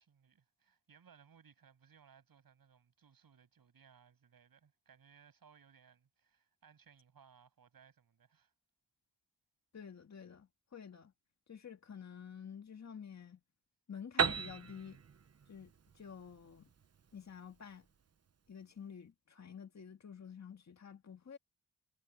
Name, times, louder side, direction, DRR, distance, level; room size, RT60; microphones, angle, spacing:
voice 1, 0.0-8.5, right 7 dB, 70° right, 7.2 m, -64 dB
voice 2, 9.7-11.1 11.5-13.4 13.9-15.0 15.5-16.7 17.1-17.9 18.5-21.4, left 7 dB, 50° left, 2.0 m, -50 dB
Piano, 14.2-17.8, right 6 dB, 45° right, 1.0 m, -37 dB
wide cardioid pair, 140°, 36 cm